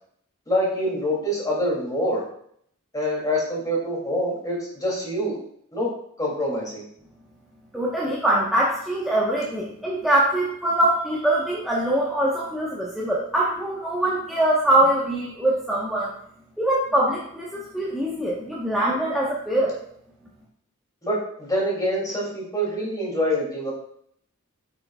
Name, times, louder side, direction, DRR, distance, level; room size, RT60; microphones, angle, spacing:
voice 1, 0.5-2.2 2.9-5.4 5.7-5.9 6.2-6.8 21.0-23.7, equal, 15° left, -4 dB, 2.9 m, -25 dB
voice 2, 7.7-16.1 16.6-19.7, right 1 dB, ahead, -7 dB, 1.2 m, -23 dB
9.8 x 6.4 x 2.4 m, 0.67 s
head